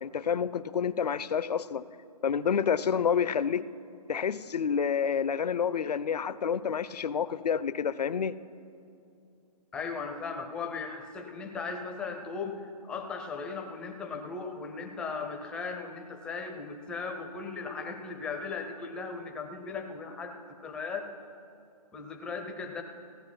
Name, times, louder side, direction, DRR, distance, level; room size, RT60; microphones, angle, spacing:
voice 1, 0.0-1.9 2.2-3.7 4.1-8.4, left 7 dB, 75° left, 0.5 m, -29 dB
voice 2, 9.7-21.1 21.9-22.8, left 4 dB, 5° left, 0.4 m, -37 dB
16.5 x 9.7 x 5.8 m
hypercardioid pair, 150°, 21 cm